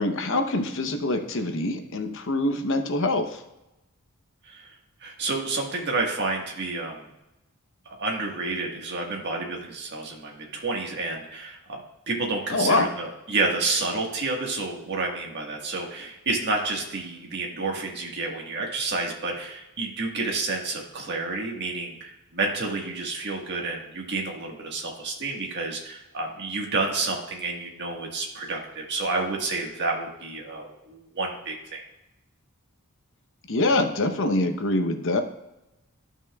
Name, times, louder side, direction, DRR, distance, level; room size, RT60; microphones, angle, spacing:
voice 1, 0.0-3.4 12.5-12.9 33.5-35.2, left 2 dB, 60° left, 6 dB, 0.8 m, -24 dB
voice 2, 5.0-7.1 7.8-11.8 12.1-31.8, right 3 dB, 50° right, 0 dB, 1.5 m, -30 dB
12.5 x 6.0 x 2.3 m, 0.95 s
head